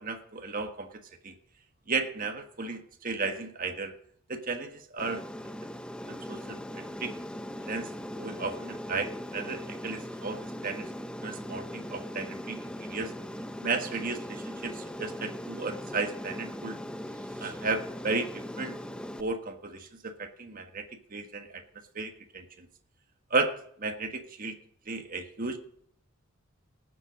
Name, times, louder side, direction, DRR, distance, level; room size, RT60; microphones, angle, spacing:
voice 1, 0.0-1.3 1.9-3.9 4.3-5.2 6.1-7.2 7.6-10.9 11.2-13.1 13.6-16.8 17.4-18.8 19.2-21.6 21.9-22.7 23.3-24.5 24.9-25.6, right 3 dB, 40° right, 5 dB, 1.6 m, -34 dB
Aircraft, 5.0-19.2, equal, 5° left, 0.7 m, -40 dB
19.0 x 7.7 x 5.1 m, 0.63 s
head